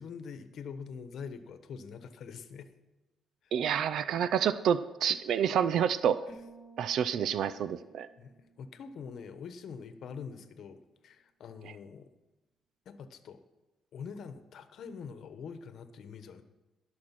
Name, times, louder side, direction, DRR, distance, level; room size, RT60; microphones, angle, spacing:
voice 1, 0.0-2.7 3.4-3.5 8.2-12.1 12.8-13.4 13.9-16.4, left 6 dB, 65° left, 10 dB, 1.0 m, -44 dB
voice 2, 3.5-6.2 6.8-8.1, right 8 dB, 75° right, 15 dB, 0.4 m, -28 dB
sound 1, 6.3-10.0, right 3 dB, 15° right, 3.1 m, -57 dB
17.0 x 6.4 x 5.9 m, 1.1 s
cardioid pair, 90°, 0 cm